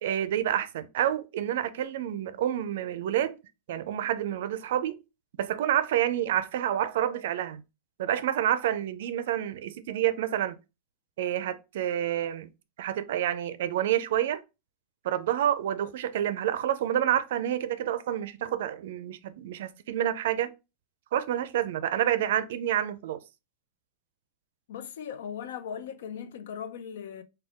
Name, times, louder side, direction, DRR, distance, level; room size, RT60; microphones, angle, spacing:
voice 1, 0.0-3.4 3.7-5.0 5.4-7.6 8.0-10.6 11.2-12.5 12.8-14.4 15.0-20.5 21.1-23.2, right 11 dB, 70° right, 0.4 m, -28 dB
voice 2, 24.7-27.2, left 8 dB, 85° left, 0.4 m, -38 dB
3.5 x 2.2 x 3.6 m
supercardioid pair, 170°, 0 cm